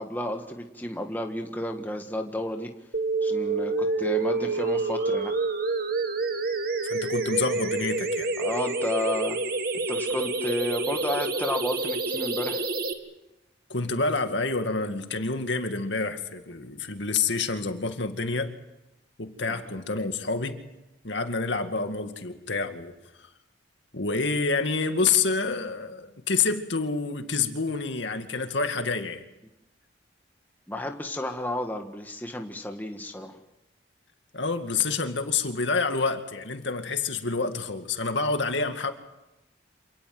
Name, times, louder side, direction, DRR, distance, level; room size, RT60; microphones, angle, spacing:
voice 1, 0.0-2.7 3.2-5.3 8.4-9.4 9.9-12.6 19.5-19.6 30.7-33.4, left 1 dB, 10° left, 3 dB, 1.6 m, -32 dB
sound 1, 2.9-12.9, right 3 dB, 50° right, 2.0 m, -28 dB
voice 2, 6.8-8.3 13.7-18.5 19.2-20.6 21.0-22.9 23.9-29.2 34.3-38.9, left 4 dB, 70° left, 6 dB, 2.2 m, -28 dB
27.5 x 18.5 x 7.9 m, 0.96 s
head